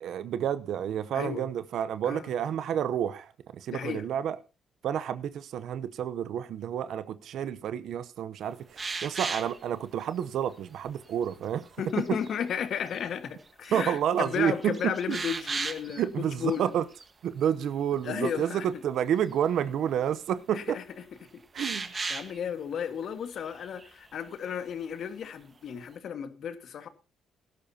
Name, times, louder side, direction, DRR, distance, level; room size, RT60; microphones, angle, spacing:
voice 1, 0.0-4.4 4.8-11.7 12.1-12.2 13.7-15.2 16.0-16.8 17.2-20.8 21.5-21.9, right 9 dB, 75° right, 0.7 m, -30 dB
voice 2, 1.1-1.5 2.1-2.3 3.7-4.0 11.8-16.7 18.0-18.6 20.5-20.8 21.3-21.8 22.1-26.9, left 8 dB, 65° left, 1.5 m, -34 dB
sound 1, 8.8-9.6 10.2-10.3 10.8-11.3 11.9-12.4 12.9-13.0 13.5-13.9 14.2-16.0 16.4-16.6 16.9-17.1 21.5-22.4 23.4-23.9, right 4 dB, 30° right, 1.4 m, -36 dB
16.5 x 12.0 x 2.8 m
cardioid pair, 90°, 0 cm